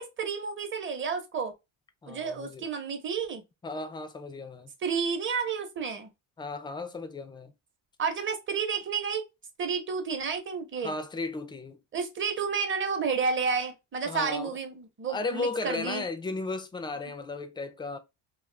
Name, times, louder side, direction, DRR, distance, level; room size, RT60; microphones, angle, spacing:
voice 1, 0.0-1.5 2.1-3.4 4.8-6.1 8.0-9.2 9.6-10.9 11.9-16.0, right 5 dB, 30° right, 0.8 m, -31 dB
voice 2, 2.0-2.7 3.6-4.7 6.4-7.5 10.8-11.8 14.1-14.6 15.1-18.0, left 3 dB, 15° left, 0.3 m, -35 dB
2.4 x 2.4 x 3.2 m
supercardioid pair, 100°, 38 cm